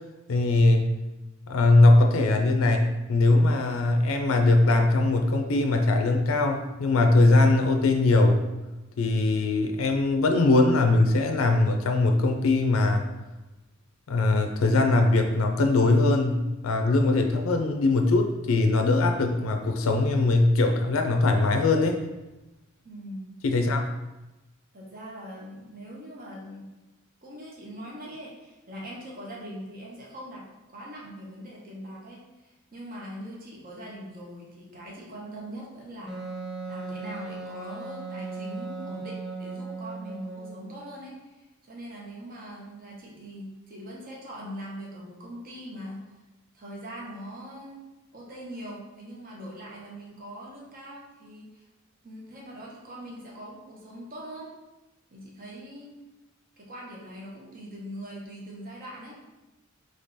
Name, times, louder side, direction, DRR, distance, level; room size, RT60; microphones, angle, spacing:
voice 1, 0.3-0.9 1.5-8.4 9.0-13.0 14.1-22.1 23.4-23.9, left 2 dB, 85° left, 4 dB, 0.4 m, -21 dB
voice 2, 22.8-23.3 24.7-26.7 27.2-36.2 36.7-46.1 46.5-47.9 48.1-51.6 52.0-54.5 55.1-55.9 56.6-59.2, equal, 45° right, -3 dB, 1.0 m, -42 dB
Wind instrument woodwind instrument, 36.1-40.7, right 3 dB, ahead, 0.9 m, -37 dB
3.7 x 3.3 x 4.0 m, 1.0 s
head